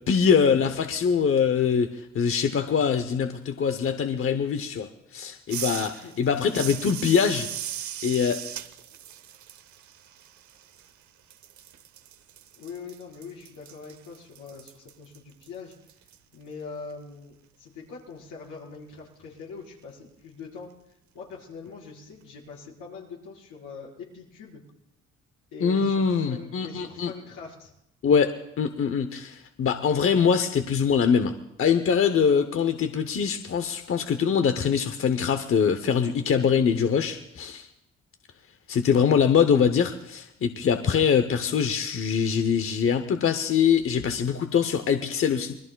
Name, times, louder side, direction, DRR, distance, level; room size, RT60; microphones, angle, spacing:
voice 1, 0.1-7.5 8.0-8.4 25.6-27.1 28.0-28.3 28.6-31.3 31.6-37.7 38.7-45.6, left 7 dB, 45° left, 8 dB, 0.8 m, -23 dB
sound 1, 5.5-11.0 11.3-16.2, right 10 dB, 70° right, 0.8 m, -39 dB
voice 2, 12.5-15.7 16.3-20.7 21.1-24.6 25.5-27.7, left 4 dB, 85° left, -3 dB, 4.5 m, -43 dB
26.0 x 20.5 x 2.3 m, 0.81 s
cardioid pair, 90°, 30 cm